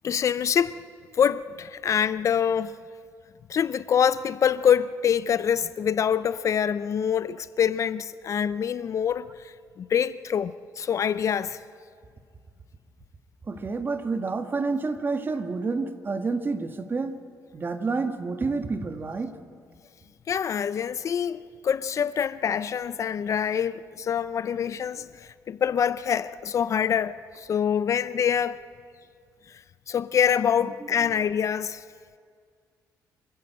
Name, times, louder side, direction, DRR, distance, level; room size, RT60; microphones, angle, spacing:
voice 1, 0.0-0.8 1.1-2.8 3.5-11.6 20.3-28.6 29.5-29.6 29.9-31.8, left 8 dB, 50° left, 0.6 m, -25 dB
voice 2, 13.5-17.1 17.5-19.3 30.6-30.7 31.0-31.1, right 4 dB, 30° right, 1.6 m, -29 dB
26.5 x 14.5 x 7.8 m
cardioid pair, 100°, 7 cm